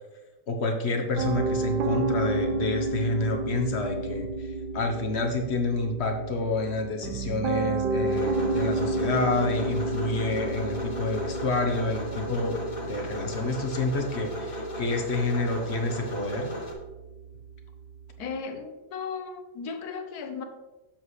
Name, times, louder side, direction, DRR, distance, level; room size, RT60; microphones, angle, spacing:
voice 1, 0.5-16.5, left 3 dB, 45° left, 1.0 m, -29 dB
Piano, 1.2-18.3, right 3 dB, 75° right, 1.3 m, -32 dB
sound 1, 8.1-16.7, left 1 dB, 25° left, 1.5 m, -36 dB
voice 2, 18.2-20.4, left 5 dB, 65° left, 1.3 m, -36 dB
7.8 x 7.3 x 3.2 m
omnidirectional pair, 1.8 m